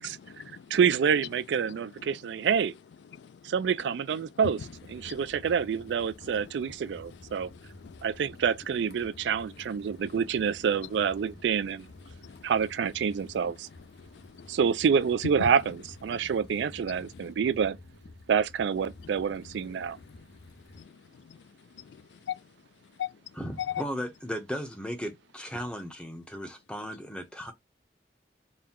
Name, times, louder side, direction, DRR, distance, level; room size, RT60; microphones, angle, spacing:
voice 1, 0.0-0.8 1.6-2.5 3.0-5.5 6.1-8.4 9.0-10.3 10.6-11.3 11.9-12.5 13.0-14.6 15.4-15.8 16.1-17.3 18.9-23.8, left 9 dB, 80° left, 0.3 m, -44 dB
voice 2, 0.7-2.7 3.4-4.6 4.9-7.5 8.0-11.9 12.4-13.7 14.5-15.8 16.0-17.8 18.3-20.0, right 7 dB, 90° right, 0.3 m, -27 dB
sound 1, 4.6-20.8, left 2 dB, 65° left, 0.9 m, -51 dB
voice 3, 23.4-27.5, equal, 5° left, 0.8 m, -36 dB
4.4 x 2.2 x 3.6 m
head